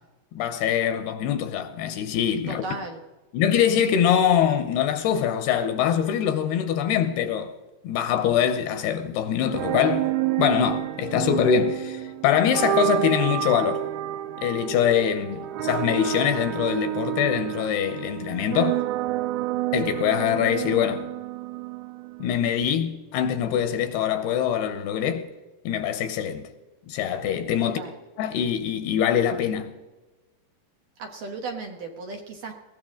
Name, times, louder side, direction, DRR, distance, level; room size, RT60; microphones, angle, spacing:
voice 1, 0.3-2.6 3.3-7.5 7.8-10.1 10.4-13.9 14.4-18.8 19.7-21.1 22.2-25.3 25.7-26.5 26.9-27.8 28.2-29.7, left 9 dB, 75° left, 2.7 m, -23 dB
voice 2, 2.5-3.0 15.3-15.5 27.6-28.0 31.0-32.5, right 3 dB, 65° right, 2.4 m, -35 dB
sound 1, 9.4-22.4, right 14 dB, 80° right, 2.4 m, -29 dB
20.5 x 17.5 x 3.8 m
omnidirectional pair, 5.0 m